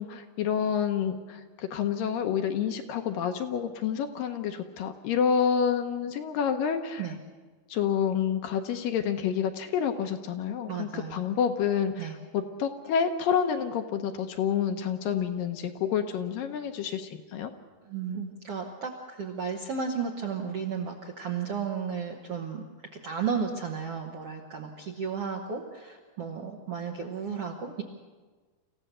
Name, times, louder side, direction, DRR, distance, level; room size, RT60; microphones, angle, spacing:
voice 1, 0.0-7.1 7.7-17.5, left 8 dB, 75° left, 6 dB, 2.3 m, -28 dB
voice 2, 10.7-11.2 12.0-12.1 17.8-22.6 22.9-27.8, right 6 dB, 65° right, 1 dB, 1.5 m, -33 dB
27.0 x 15.5 x 6.8 m, 1.4 s
omnidirectional pair, 4.6 m